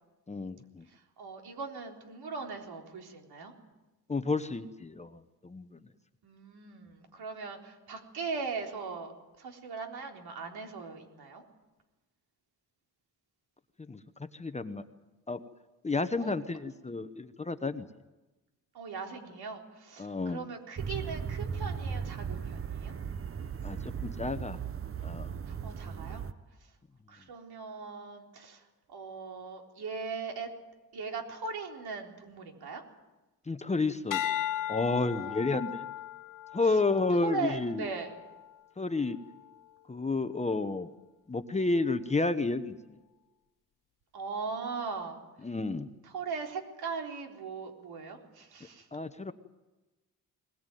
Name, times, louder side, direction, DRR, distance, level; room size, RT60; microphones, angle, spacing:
voice 1, 0.3-0.9 4.1-5.1 5.4-5.8 13.9-14.8 15.3-15.4 15.8-17.9 20.0-20.4 23.6-24.6 25.0-25.3 33.5-34.2 34.7-35.9 36.5-37.9 38.8-39.2 39.9-40.9 41.3-43.0 45.4-45.9 48.9-49.3, left 3 dB, 20° left, 10 dB, 1.0 m, -31 dB
voice 2, 0.9-3.5 6.2-9.1 9.4-11.4 16.2-16.3 18.7-22.9 25.5-26.2 27.1-28.6 28.9-30.5 30.9-32.8 35.0-35.5 36.6-36.8 37.2-38.1 44.1-45.2 46.1-48.9, right 4 dB, 75° right, 2 dB, 3.9 m, -39 dB
sound 1, 20.8-26.3, right 7 dB, 35° right, 0.9 m, -37 dB
sound 2, 34.1-38.6 39.1-39.5, left 11 dB, 55° left, 1.2 m, -37 dB
21.0 x 20.5 x 9.2 m, 1.1 s
cardioid pair, 125°, 38 cm